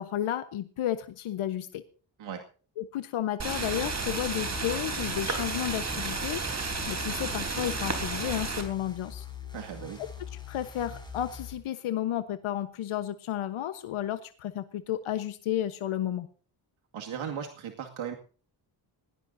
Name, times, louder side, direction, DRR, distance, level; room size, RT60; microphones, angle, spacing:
voice 1, 0.0-1.8 2.8-6.4 6.9-9.3 10.0-16.3, left 11 dB, 90° left, 10 dB, 1.2 m, -32 dB
sound 1, 3.4-8.6, right 4 dB, 35° right, 3.8 m, -32 dB
sound 2, 3.7-11.5, left 7 dB, 10° left, 6.5 m, -43 dB
voice 2, 9.5-10.0 16.9-18.2, right 8 dB, 75° right, 2 dB, 2.3 m, -37 dB
20.5 x 18.0 x 2.7 m, 0.39 s
cardioid pair, 115°, 48 cm